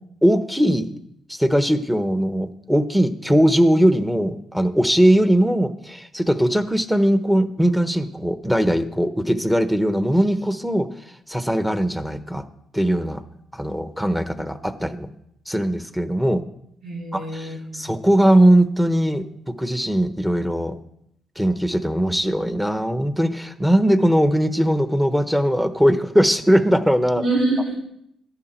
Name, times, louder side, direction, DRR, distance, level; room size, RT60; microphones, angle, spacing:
voice 1, 0.2-0.9 1.3-10.9 11.3-12.4 12.7-13.2 13.5-15.1 15.5-16.4 17.1-20.7 21.4-27.2, equal, 5° right, 9 dB, 1.1 m, -20 dB
voice 2, 16.8-17.9 27.1-27.7, right 2 dB, 90° right, -6 dB, 3.9 m, -25 dB
14.5 x 11.0 x 4.5 m, 0.76 s
cardioid pair, 90°, 0 cm